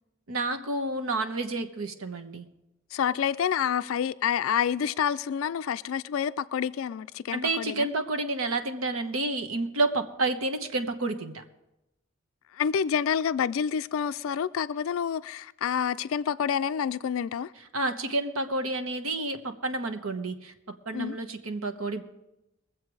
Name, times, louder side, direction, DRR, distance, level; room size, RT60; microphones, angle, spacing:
voice 1, 0.3-2.4 7.3-11.4 17.7-22.0, right 2 dB, 75° right, 1.1 m, -30 dB
voice 2, 2.9-7.9 12.6-17.5 20.9-21.2, left 8 dB, 65° left, 0.3 m, -28 dB
22.0 x 7.5 x 4.8 m
head